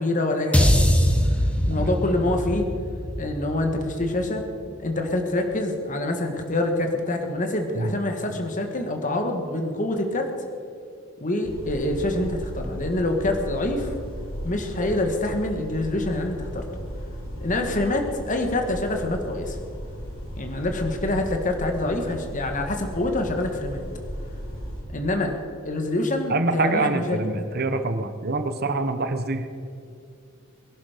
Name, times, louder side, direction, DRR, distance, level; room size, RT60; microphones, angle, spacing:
voice 1, 0.0-1.4 1.7-2.7 3.2-4.4 4.8-10.3 11.2-14.0 14.4-16.7 17.4-19.6 20.4-23.9 24.9-25.4 25.6-27.2, left 1 dB, 40° left, 4 dB, 1.7 m, -26 dB
sound 1, 0.5-4.9, equal, 5° left, 1.3 m, -23 dB
sound 2, 11.4-24.8, equal, 65° left, 4.2 m, -36 dB
voice 2, 26.3-29.5, right 3 dB, 50° right, 8 dB, 1.1 m, -25 dB
22.5 x 11.0 x 5.2 m, 2.4 s
head